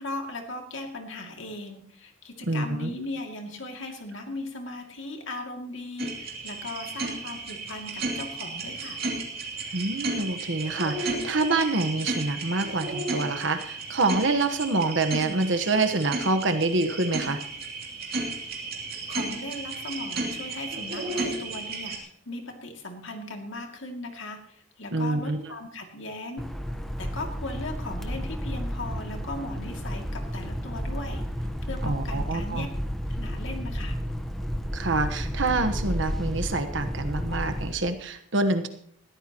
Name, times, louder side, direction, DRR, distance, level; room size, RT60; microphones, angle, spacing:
voice 1, 0.0-9.0 19.1-26.4 27.0-32.7 33.1-34.0, left 2 dB, 70° left, 3 dB, 2.5 m, -38 dB
voice 2, 2.5-2.9 9.7-17.4 24.9-25.5 31.8-32.7 34.7-38.7, right 2 dB, 70° right, 9 dB, 1.3 m, -26 dB
sound 1, 6.0-22.0, right 3 dB, 50° right, 2.9 m, -33 dB
sound 2, 26.4-37.7, equal, ahead, 1.1 m, -32 dB
20.0 x 14.0 x 3.0 m, 0.64 s
head